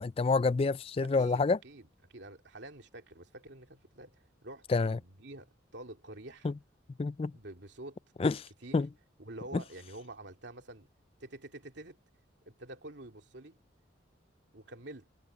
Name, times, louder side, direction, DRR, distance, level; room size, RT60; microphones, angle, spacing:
voice 1, 0.0-1.6 4.7-5.0 6.4-6.5 7.0-7.3 8.2-8.4 8.7-8.9 9.5-9.6, left 4 dB, 30° left, 0.3 m, -27 dB
voice 2, 1.0-1.9 2.1-6.5 7.3-8.0 8.6-8.9 9.2-10.9 11.2-12.0 12.5-13.6 14.5-15.1, right 1 dB, 70° right, 2.6 m, -48 dB
head